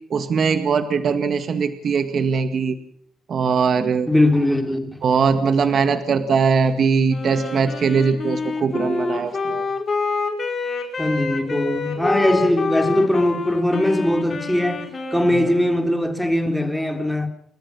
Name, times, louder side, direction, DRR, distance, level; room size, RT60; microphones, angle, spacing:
voice 1, 0.1-2.8 3.3-4.1 5.0-9.7 15.3-15.4, right 5 dB, 55° right, 1.9 m, -20 dB
voice 2, 4.1-5.0 11.0-17.3, left 1 dB, ahead, 3.8 m, -20 dB
Wind instrument woodwind instrument, 7.1-15.9, left 3 dB, 40° left, 4.7 m, -27 dB
30.0 x 13.5 x 7.1 m
cardioid pair, 90°, 0 cm